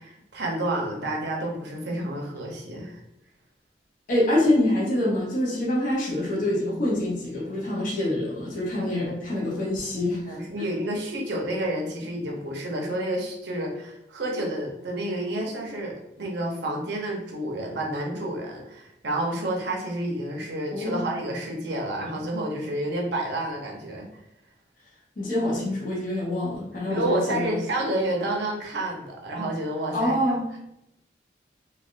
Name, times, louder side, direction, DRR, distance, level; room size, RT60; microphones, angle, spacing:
voice 1, 0.0-3.0 8.8-9.3 10.3-24.1 26.9-30.1, right 1 dB, 70° right, -1 dB, 0.7 m, -30 dB
voice 2, 4.1-10.4 20.7-21.1 25.2-27.6 29.9-30.6, left 1 dB, 50° left, -5 dB, 0.7 m, -25 dB
3.3 x 2.3 x 2.5 m, 0.84 s
head